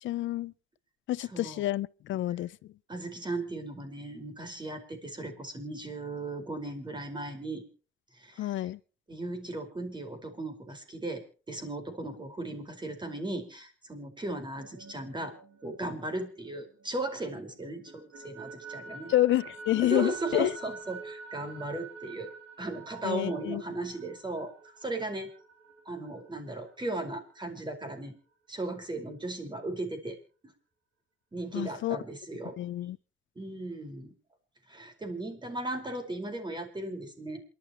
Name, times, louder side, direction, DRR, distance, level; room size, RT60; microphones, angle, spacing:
voice 1, 0.0-0.5 1.1-2.5 8.4-8.8 19.1-20.5 23.0-23.6 31.5-32.0 32.6-33.0, left 14 dB, 75° left, 0.6 m, -28 dB
voice 2, 1.3-1.6 2.9-7.6 8.2-8.6 9.1-15.3 15.6-19.1 19.8-22.3 22.6-24.5 24.8-25.3 25.8-28.2 28.5-30.2 30.4-30.5 31.3-32.6 33.3-34.1 34.7-37.4, right 2 dB, 20° right, 4.9 m, -36 dB
sound 1, 14.5-17.2 17.6-27.0, right 4 dB, 65° right, 2.5 m, -47 dB
28.0 x 12.0 x 3.0 m
cardioid pair, 90°, 20 cm